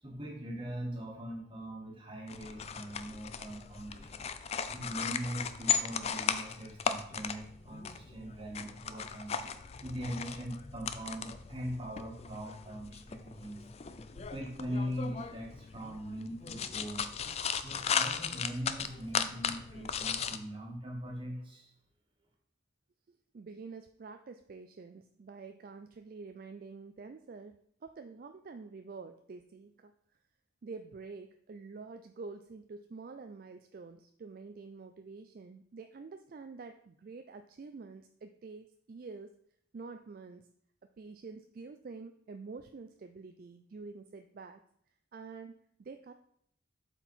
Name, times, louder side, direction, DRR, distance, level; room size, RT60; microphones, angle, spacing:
voice 1, 0.0-4.2 4.7-9.4 9.8-13.7 14.1-17.1 17.6-21.7, equal, 25° right, -1 dB, 1.6 m, -41 dB
sound 1, 2.3-20.4, left 7 dB, 35° left, 0.4 m, -37 dB
voice 2, 23.1-27.6 27.8-29.9 30.6-39.3 39.7-40.5 41.0-44.6 45.1-46.1, right 4 dB, 50° right, 7 dB, 0.3 m, -47 dB
7.7 x 4.6 x 4.2 m, 0.68 s
head